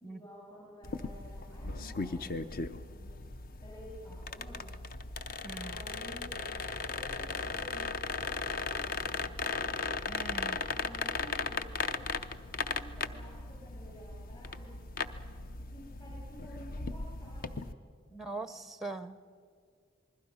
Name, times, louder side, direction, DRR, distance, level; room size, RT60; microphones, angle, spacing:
voice 1, 0.0-3.2 3.6-4.8 5.6-6.6 6.9-9.8 10.7-12.2 12.6-14.7 15.7-17.6 18.1-18.5, equal, 30° left, -4 dB, 6.8 m, -52 dB
sound 1, 0.8-17.7, left 4 dB, 45° left, 0.7 m, -37 dB
voice 2, 5.4-5.8 10.1-10.6 18.1-19.2, right 3 dB, ahead, 12 dB, 0.6 m, -41 dB
27.5 x 21.0 x 5.6 m, 2.2 s
head